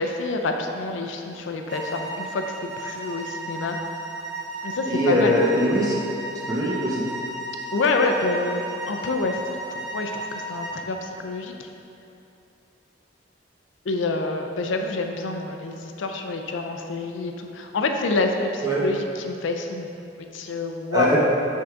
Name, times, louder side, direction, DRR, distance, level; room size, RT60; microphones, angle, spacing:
voice 1, 0.0-3.8 4.6-5.4 7.7-9.4 9.7-11.7 13.8-19.9 20.2-21.2, left 3 dB, 75° left, 4 dB, 0.4 m, -27 dB
sound 1, 1.7-10.8, right 2 dB, 65° right, 1.0 m, -34 dB
voice 2, 4.8-6.0 6.5-7.1 18.6-18.8 20.9-21.2, equal, 20° right, -5 dB, 0.8 m, -21 dB
6.1 x 3.6 x 4.5 m, 2.8 s
head